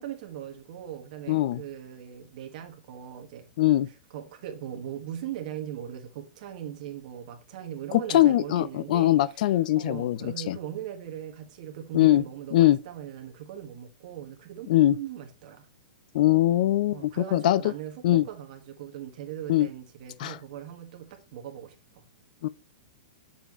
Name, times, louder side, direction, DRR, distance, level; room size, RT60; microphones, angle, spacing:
voice 1, 0.0-3.5 3.9-15.7 16.9-22.0, right 10 dB, 55° right, 1.5 m, -40 dB
voice 2, 1.3-1.6 3.6-3.9 7.9-10.6 11.9-12.2 12.5-12.8 14.7-15.0 16.1-17.7 18.0-18.3 19.5-19.7 20.2-20.4 22.4-22.5, left 14 dB, 60° left, 0.5 m, -22 dB
7.4 x 5.6 x 3.1 m
hypercardioid pair, 130°, 5 cm